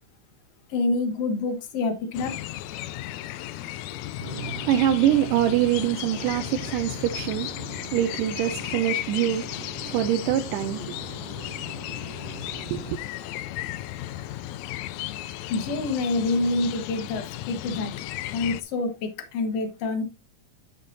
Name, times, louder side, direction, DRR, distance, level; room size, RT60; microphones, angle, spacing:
voice 1, 0.7-2.4 15.5-17.9 18.3-20.0, left 3 dB, 60° left, 2.2 m, -27 dB
sound 1, 2.1-18.6, left 14 dB, 80° left, 1.7 m, -35 dB
voice 2, 4.2-13.0, right 12 dB, 90° right, 2.2 m, -26 dB
10.5 x 6.8 x 2.7 m
omnidirectional pair, 3.7 m